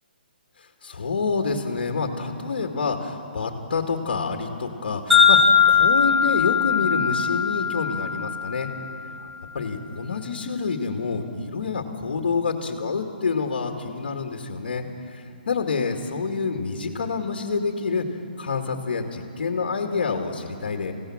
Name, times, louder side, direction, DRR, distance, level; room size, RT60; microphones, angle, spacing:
voice 1, 0.8-5.4 5.7-8.7 9.2-9.3 9.5-18.1 18.4-20.9, left 4 dB, 70° left, 3 dB, 2.2 m, -27 dB
Wind chime, 5.1-9.4, left 6 dB, ahead, 2.9 m, -20 dB
26.5 x 17.0 x 7.5 m, 2.7 s
hypercardioid pair, 160°, 5 cm